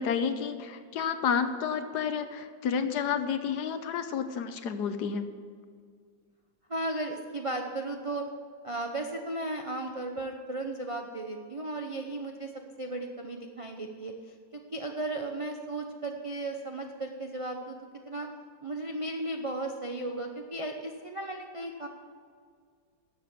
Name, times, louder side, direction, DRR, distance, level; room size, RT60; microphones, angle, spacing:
voice 1, 0.0-5.3, left 7 dB, 70° left, 10 dB, 1.3 m, -30 dB
voice 2, 6.7-8.3 8.6-12.5 12.8-17.8 18.1-18.3 18.6-21.9, right 2 dB, 50° right, 3 dB, 0.3 m, -35 dB
12.5 x 7.6 x 7.3 m, 2.1 s
omnidirectional pair, 1.9 m